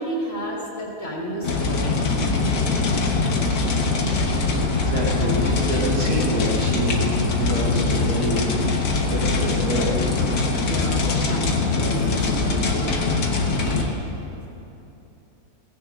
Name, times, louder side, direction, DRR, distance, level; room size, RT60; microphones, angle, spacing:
voice 1, 0.0-2.1 10.6-13.1 13.6-13.9, right 1 dB, 50° left, -5 dB, 3.0 m, -32 dB
sound 1, 1.4-13.8, left 3 dB, 90° left, 1.9 m, -22 dB
voice 2, 2.4-2.8 4.3-7.0 7.3-10.0, right 1 dB, 70° right, -7 dB, 3.8 m, -28 dB
17.5 x 15.5 x 3.8 m, 2.9 s
omnidirectional pair, 1.7 m